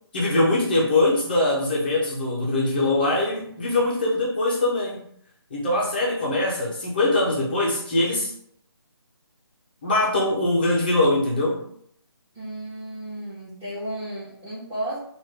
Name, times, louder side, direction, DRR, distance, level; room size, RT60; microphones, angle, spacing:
voice 1, 0.1-5.0 5.5-8.3 9.8-11.6, left 2 dB, 20° left, -4 dB, 0.5 m, -22 dB
voice 2, 12.3-15.0, right 1 dB, 10° right, -15 dB, 0.9 m, -33 dB
3.1 x 2.2 x 3.3 m, 0.67 s
figure-of-eight pair, 165°, 14 cm